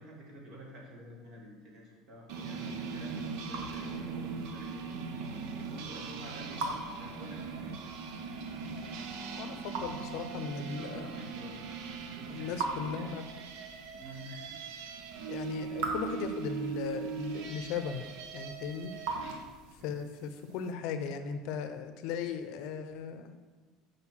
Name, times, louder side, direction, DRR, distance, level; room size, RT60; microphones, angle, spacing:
voice 1, 0.0-4.8 5.7-8.2 10.7-11.7 12.0-13.2 14.0-14.9 19.1-20.0, right 1 dB, 50° right, -2 dB, 2.1 m, -50 dB
sound 1, 2.3-19.5, right 5 dB, 70° right, 0.7 m, -40 dB
Raindrop / Drip, 2.8-20.0, right 3 dB, 85° right, 1.2 m, -44 dB
voice 2, 9.3-11.2 12.3-13.2 15.3-18.0 18.3-18.9 19.8-23.4, left 6 dB, 65° left, 9 dB, 0.6 m, -37 dB
5.7 x 5.2 x 6.1 m, 1.4 s
cardioid pair, 150°, 0 cm